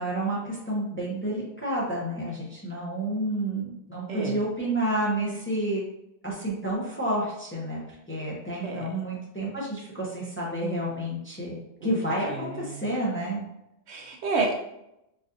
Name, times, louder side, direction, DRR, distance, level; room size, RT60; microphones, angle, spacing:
voice 1, 0.0-5.8 6.2-7.8 8.1-13.4, right 1 dB, 15° left, -5 dB, 0.6 m, -30 dB
voice 2, 4.1-4.4 8.6-8.9 11.8-11.9 12.3-12.9 13.9-14.6, right 3 dB, 70° right, 2 dB, 0.8 m, -30 dB
4.2 x 2.4 x 2.6 m, 0.84 s
omnidirectional pair, 1.3 m